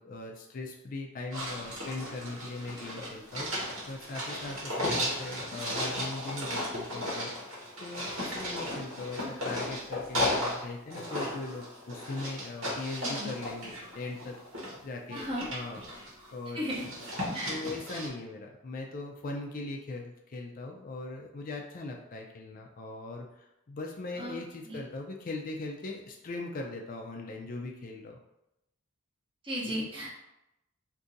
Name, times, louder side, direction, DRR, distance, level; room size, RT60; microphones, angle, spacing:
voice 1, 0.0-3.5 3.9-14.4 14.8-15.8 16.3-16.7 17.5-28.2, left 2 dB, 40° left, 1 dB, 0.4 m, -40 dB
sound 1, 1.3-10.6 10.9-14.7 15.1-16.3 16.6-18.1, left 1 dB, 75° right, 1.1 m, -35 dB
voice 2, 15.1-15.5 16.5-16.8 17.3-17.6 24.2-24.4 24.7-24.8 29.4-30.1, equal, 25° right, -3 dB, 0.7 m, -35 dB
2.6 x 2.5 x 3.9 m, 0.87 s
head